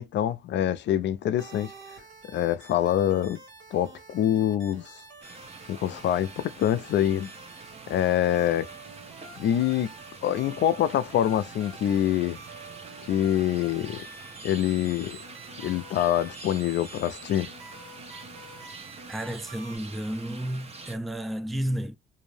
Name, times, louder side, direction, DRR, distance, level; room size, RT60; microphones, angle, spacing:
voice 1, 0.0-1.7 2.3-3.4 3.7-4.9 5.7-7.3 7.9-8.7 9.4-9.9 10.2-12.4 13.1-14.0 14.4-15.2 15.6-17.5, left 11 dB, 65° left, 0.4 m, -25 dB
sound 1, 1.4-19.8, right 3 dB, 80° right, 1.2 m, -48 dB
sound 2, 5.2-21.0, right 4 dB, 30° right, 0.8 m, -45 dB
voice 2, 19.1-22.0, right 1 dB, ahead, 0.3 m, -32 dB
2.6 x 2.0 x 3.1 m
cardioid pair, 90°, 20 cm